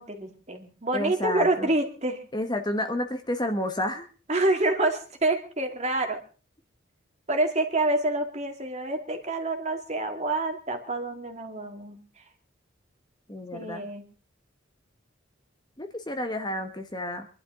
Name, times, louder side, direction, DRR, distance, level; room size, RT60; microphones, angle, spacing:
voice 1, 0.0-2.2 4.3-6.2 7.3-12.0 13.5-14.1, right 2 dB, 35° right, 4 dB, 2.2 m, -27 dB
voice 2, 0.9-1.7 2.3-4.1 13.3-13.8 15.8-17.3, left 1 dB, 20° left, 6 dB, 1.2 m, -30 dB
25.0 x 11.5 x 3.7 m, 0.35 s
head